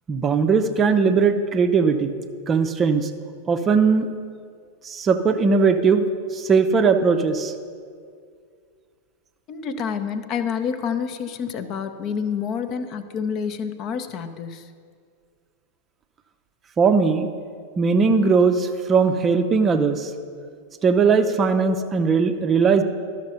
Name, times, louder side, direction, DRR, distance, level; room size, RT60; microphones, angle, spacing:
voice 1, 0.1-2.1 2.5-3.1 3.5-4.1 4.8-6.1 6.3-7.5 16.8-17.3 17.8-20.1 20.8-22.8, right 5 dB, 25° right, 8 dB, 0.5 m, -19 dB
voice 2, 9.5-14.7, left 6 dB, 35° left, 9 dB, 0.7 m, -28 dB
12.5 x 6.4 x 5.5 m, 2.1 s
figure-of-eight pair, 90°, 0 cm